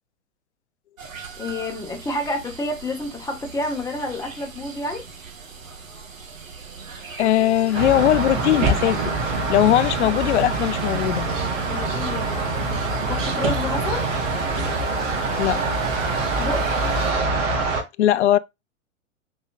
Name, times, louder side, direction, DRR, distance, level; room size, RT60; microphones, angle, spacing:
sound 1, 1.0-17.1, right 5 dB, 85° right, 1.9 m, -39 dB
voice 1, 1.4-5.0 11.7-14.1 16.4-16.6, left 1 dB, 10° left, 1.8 m, -29 dB
voice 2, 7.2-9.1 9.5-11.3 15.4-15.6 18.0-18.4, left 13 dB, 60° left, 0.6 m, -19 dB
sound 2, 7.7-17.8, right 3 dB, 65° right, 2.7 m, -24 dB
7.1 x 5.2 x 2.6 m
hypercardioid pair, 115°, 39 cm